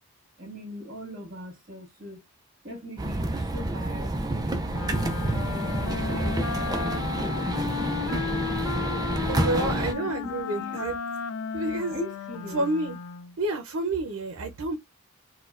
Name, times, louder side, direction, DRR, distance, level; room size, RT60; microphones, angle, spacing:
voice 1, 0.4-2.2 2.6-6.7 7.1-8.9 9.5-10.9 11.9-12.7, left 1 dB, 40° right, 1.6 m, -41 dB
sound 1, 3.0-9.9, right 1 dB, 20° right, 0.3 m, -28 dB
Wind instrument woodwind instrument, 4.7-13.4, left 7 dB, 80° left, 0.3 m, -34 dB
voice 2, 9.3-11.0 11.5-12.0 12.5-13.0 13.4-14.8, right 2 dB, 85° right, 0.6 m, -29 dB
4.1 x 2.2 x 2.4 m
head